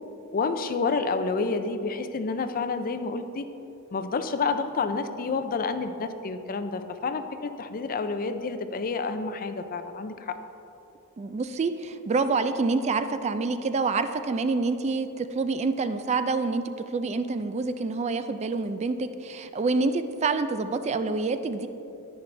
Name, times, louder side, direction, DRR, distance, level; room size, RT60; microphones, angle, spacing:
voice 1, 0.3-3.4 3.9-10.4, left 4 dB, 40° left, 9 dB, 0.5 m, -29 dB
voice 2, 11.2-21.7, right 3 dB, 30° right, 10 dB, 0.3 m, -27 dB
10.0 x 9.9 x 3.3 m, 2.9 s
head